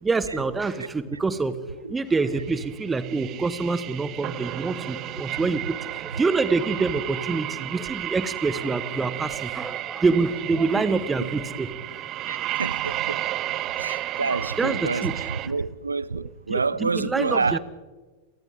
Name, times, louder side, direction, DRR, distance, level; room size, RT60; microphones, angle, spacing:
voice 1, 0.0-1.6 1.9-11.7 14.1-15.1 16.5-17.6, right 4 dB, 15° right, 1.4 m, -26 dB
voice 2, 0.8-1.2 1.8-1.9 10.7-10.8 11.2-11.3 12.3-13.2 13.8-17.6, right 4 dB, 75° right, 0.7 m, -28 dB
sound 1, 2.3-15.5, right 14 dB, 35° right, 0.8 m, -33 dB
30.0 x 23.0 x 3.8 m
figure-of-eight pair, 90°, 0 cm